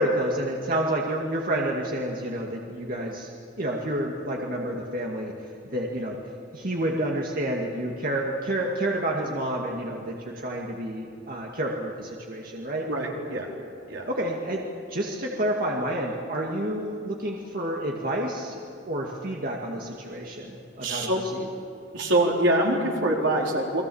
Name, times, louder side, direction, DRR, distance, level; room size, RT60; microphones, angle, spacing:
voice 1, 0.0-3.3 3.6-5.3 5.6-6.2 6.5-12.9 14.1-18.6 18.9-21.4, right 1 dB, 50° right, -1 dB, 2.1 m, -29 dB
voice 2, 12.9-13.5 13.9-14.1 20.8-21.2 21.9-23.8, right 1 dB, 80° right, -1 dB, 4.3 m, -24 dB
29.5 x 22.0 x 7.2 m, 2.6 s
head